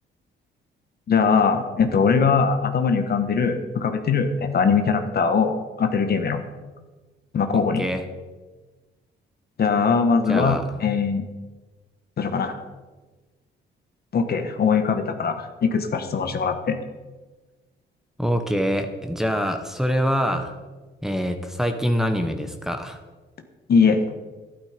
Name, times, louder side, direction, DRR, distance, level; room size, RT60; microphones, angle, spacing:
voice 1, 1.1-6.4 7.3-7.8 9.6-11.2 12.2-12.5 14.1-16.8 23.7-24.0, left 5 dB, 50° left, 7 dB, 1.4 m, -21 dB
voice 2, 7.5-8.0 10.3-10.6 18.2-20.5 21.0-23.0, equal, ahead, 5 dB, 1.3 m, -25 dB
12.0 x 12.0 x 5.2 m, 1.3 s
cardioid pair, 90°, 20 cm